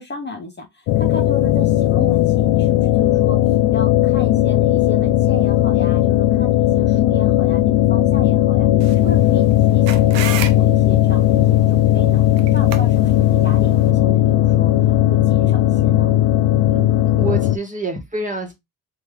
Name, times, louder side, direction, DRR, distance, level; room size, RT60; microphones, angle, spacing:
voice 1, 0.0-8.7 8.9-12.2 12.5-16.2, left 3 dB, 25° left, 1.0 m, -32 dB
sound 1, 0.9-17.6, left 13 dB, 60° left, 0.5 m, -16 dB
sound 2, 8.8-13.9, right 8 dB, 70° right, 0.9 m, -33 dB
voice 2, 16.7-18.5, right 2 dB, 15° right, 1.5 m, -27 dB
3.4 x 3.2 x 3.1 m
supercardioid pair, 70°, 44 cm